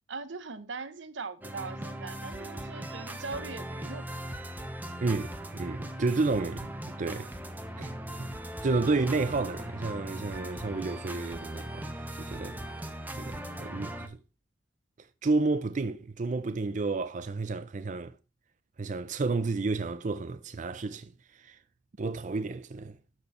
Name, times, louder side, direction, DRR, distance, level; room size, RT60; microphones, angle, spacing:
voice 1, 0.1-4.1, right 4 dB, 85° right, 0.9 m, -40 dB
sound 1, 1.4-14.1, right 1 dB, 10° right, 0.9 m, -39 dB
voice 2, 5.0-7.3 7.8-7.9 8.2-8.3 8.6-12.6 13.1-14.2 15.0-18.2 18.8-21.6 22.0-23.0, right 3 dB, 40° right, 0.5 m, -31 dB
12.0 x 4.5 x 4.3 m
head